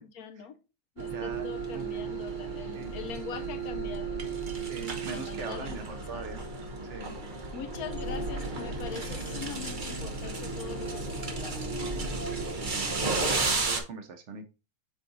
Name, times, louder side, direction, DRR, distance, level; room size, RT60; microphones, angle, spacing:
voice 1, 0.0-0.6 1.0-4.4 5.1-5.7 5.9-6.3 7.5-11.8, left 7 dB, 70° left, 0.9 m, -43 dB
sound 1, 1.0-13.8, right 3 dB, 50° right, 0.5 m, -33 dB
voice 2, 1.1-1.5 1.7-1.8 2.7-2.9 4.6-6.4 6.9-7.2 12.6-14.4, right 5 dB, 90° right, 0.6 m, -41 dB
6.4 x 4.0 x 3.8 m
omnidirectional pair, 2.3 m